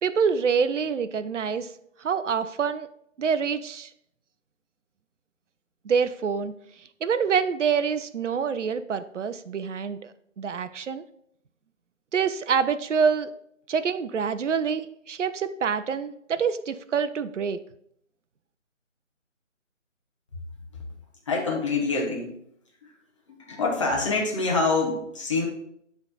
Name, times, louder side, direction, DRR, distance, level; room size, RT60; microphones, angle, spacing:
voice 1, 0.0-1.7 2.0-2.9 3.2-3.9 5.8-6.5 7.0-10.1 10.4-11.0 12.1-13.3 13.7-17.6, right 6 dB, 65° right, 12 dB, 0.5 m, -26 dB
voice 2, 21.3-22.3 22.8-22.9 23.3-25.4, left 3 dB, 25° left, -1 dB, 1.0 m, -26 dB
9.5 x 3.5 x 3.9 m, 0.71 s
figure-of-eight pair, 155°, 40 cm